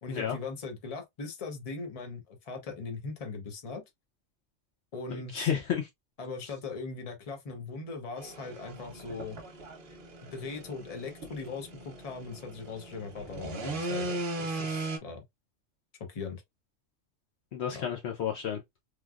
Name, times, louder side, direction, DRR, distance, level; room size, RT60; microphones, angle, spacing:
voice 1, 0.0-3.8 4.9-5.5 6.2-9.4 10.2-15.2 16.1-16.4 17.7-17.9, left 4 dB, 35° left, 0.7 m, -40 dB
voice 2, 5.1-5.9 17.5-18.6, left 8 dB, 65° left, 0.8 m, -31 dB
sound 1, 8.2-15.0, right 2 dB, 55° right, 0.9 m, -38 dB
3.2 x 2.3 x 2.3 m
omnidirectional pair, 1.3 m